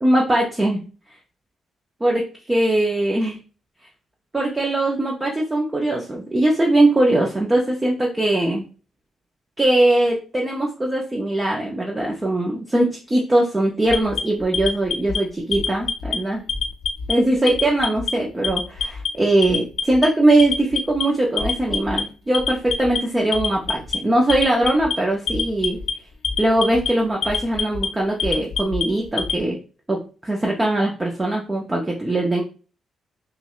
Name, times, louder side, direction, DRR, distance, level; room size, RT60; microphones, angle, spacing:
voice 1, 0.0-0.8 2.0-2.2 2.5-3.4 4.3-8.6 9.6-16.4 17.1-25.8 26.4-29.6 29.9-30.0 30.2-32.4, right 1 dB, 15° right, -1 dB, 0.5 m, -20 dB
Alarm, 13.9-15.2 15.5-16.2 16.5-17.1 17.5-18.1 18.4-19.1 19.4-20.1 20.4-21.0 21.4-22.0 22.3-23.0 23.3-24.0 24.3-24.9 25.3-25.9 26.2-26.9 27.2-27.9 28.2-29.4, left 6 dB, 55° left, 0.5 m, -25 dB
5.6 x 2.1 x 2.3 m, 0.36 s
wide cardioid pair, 180°, 0 cm